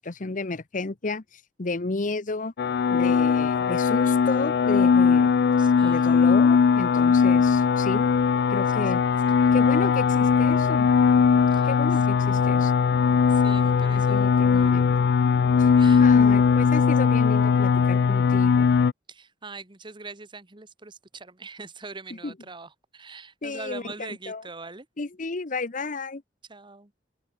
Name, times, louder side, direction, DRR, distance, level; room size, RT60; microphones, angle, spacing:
voice 1, 0.0-2.5 2.9-5.3 5.8-8.1 8.5-9.0 9.5-10.9 11.6-12.7 13.9-14.9 15.6-15.7 16.0-18.7 22.2-22.3 23.4-23.8 24.3-24.4 25.0-26.2, left 3 dB, 45° left, 0.9 m, -32 dB
sound 1, 2.6-18.9, left 6 dB, 60° left, 0.3 m, -20 dB
voice 2, 5.6-6.1 7.0-7.3 9.3-9.6 11.5-11.7 13.3-14.9 15.6-16.6 19.1-24.9 26.5-26.9, right 3 dB, 25° right, 1.4 m, -43 dB
head